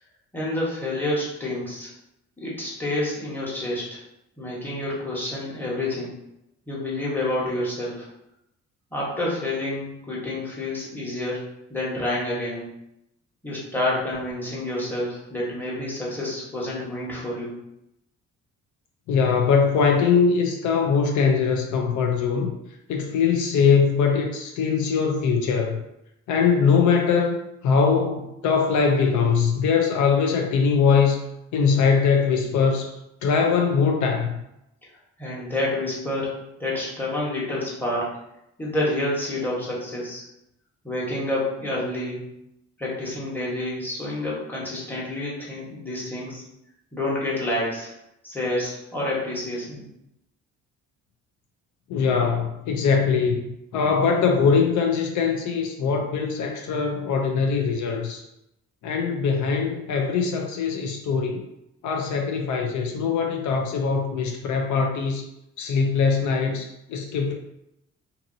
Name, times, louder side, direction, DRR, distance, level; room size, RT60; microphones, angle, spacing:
voice 1, 0.3-1.9 2.4-4.0 4.4-6.1 6.7-8.1 8.9-11.4 11.7-12.6 13.4-17.5 35.2-38.1 38.6-40.2 40.8-42.2 42.8-46.4 46.9-47.9 48.2-49.8, left 1 dB, 5° left, -7 dB, 1.1 m, -28 dB
voice 2, 19.1-22.5 22.9-25.8 26.3-27.4 27.6-31.2 31.5-32.9 33.2-34.4 51.9-53.4 53.7-58.2 58.8-61.4 61.8-65.2 65.6-67.3, left 5 dB, 75° left, 2 dB, 0.5 m, -22 dB
2.6 x 2.6 x 2.6 m, 0.84 s
cardioid pair, 90°, 30 cm